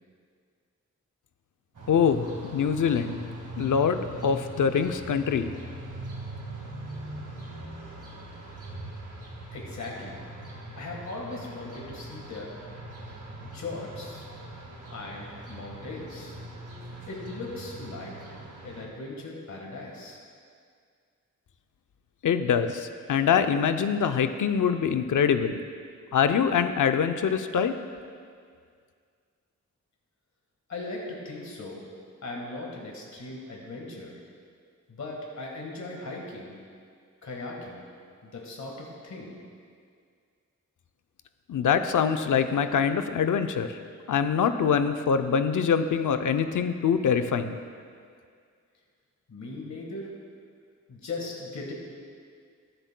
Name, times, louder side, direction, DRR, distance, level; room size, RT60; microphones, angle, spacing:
sound 1, 1.7-18.8, right 1 dB, 80° right, 1.9 m, -41 dB
voice 1, 1.9-3.2 3.6-5.5 22.2-25.6 26.1-27.7 41.5-43.8 44.1-47.6, left 7 dB, 90° left, 8 dB, 0.6 m, -24 dB
voice 2, 9.5-10.2 10.8-12.5 13.5-14.3 14.9-16.4 17.1-18.3 18.6-20.2 30.7-31.8 32.2-34.2 34.9-36.5 37.2-37.8 38.2-39.4 49.3-50.1 50.9-51.7, left 2 dB, 65° left, -2 dB, 1.6 m, -38 dB
22.5 x 7.8 x 2.2 m, 2.1 s
wide cardioid pair, 120°, 30 cm